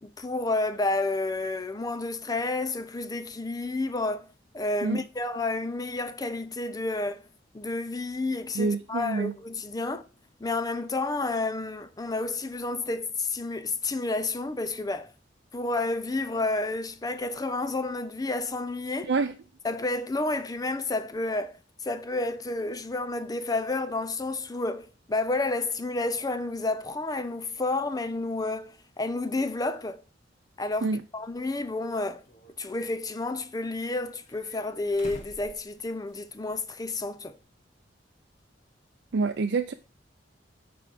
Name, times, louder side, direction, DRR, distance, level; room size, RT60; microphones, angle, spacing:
voice 1, 0.0-4.2 4.5-7.2 7.5-10.0 10.4-15.1 15.5-19.1 19.6-21.6 21.8-30.0 30.6-32.2 32.6-37.4, left 2 dB, 20° left, 0.5 m, -30 dB
voice 2, 8.5-9.3 19.0-19.3 30.8-31.0 39.1-39.7, right 4 dB, 65° right, 0.5 m, -27 dB
sound 1, 31.3-31.4 32.3-33.2 34.1-36.4 36.7-36.8 38.4-38.5, equal, 40° left, 1.4 m, -48 dB
7.9 x 4.7 x 4.8 m
head